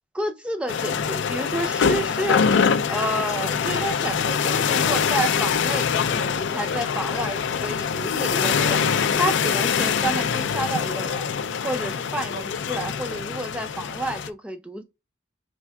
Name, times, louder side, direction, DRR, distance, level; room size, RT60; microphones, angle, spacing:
voice 1, 0.1-2.4 2.9-8.9 9.1-11.3 11.6-14.8, right 1 dB, 5° right, 0.4 m, -30 dB
sound 1, 0.7-14.3, left 6 dB, 70° left, 0.4 m, -24 dB
4.6 x 3.4 x 2.2 m
head